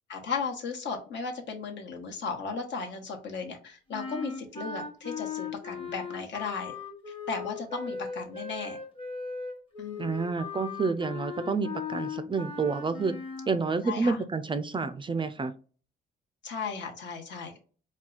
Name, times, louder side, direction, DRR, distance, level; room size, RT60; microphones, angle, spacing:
voice 1, 0.1-6.8 7.3-8.8 9.8-10.1 13.8-14.2 16.4-17.6, left 5 dB, 65° left, 3 dB, 1.1 m, -35 dB
sound 1, 3.9-13.5, left 5 dB, 25° left, 1.1 m, -38 dB
voice 2, 10.0-13.1 13.5-15.5, right 4 dB, 25° right, 11 dB, 0.4 m, -29 dB
4.4 x 2.3 x 3.8 m, 0.38 s
cardioid pair, 90°, 20 cm